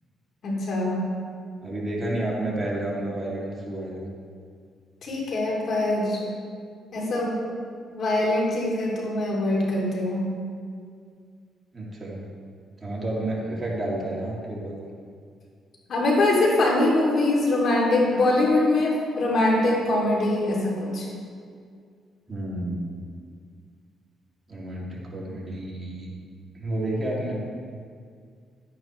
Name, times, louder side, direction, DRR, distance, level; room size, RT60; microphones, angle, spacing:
voice 1, 0.4-1.0 5.0-6.2 6.9-7.4 7.9-10.2 15.9-21.1, left 2 dB, 60° left, -3 dB, 3.0 m, -23 dB
voice 2, 1.6-4.1 11.7-12.2 12.8-14.9 22.3-22.9 24.5-26.1 26.5-27.4, right 1 dB, 25° right, -4 dB, 2.7 m, -30 dB
12.0 x 10.0 x 3.2 m, 2.1 s
cardioid pair, 90°, 0 cm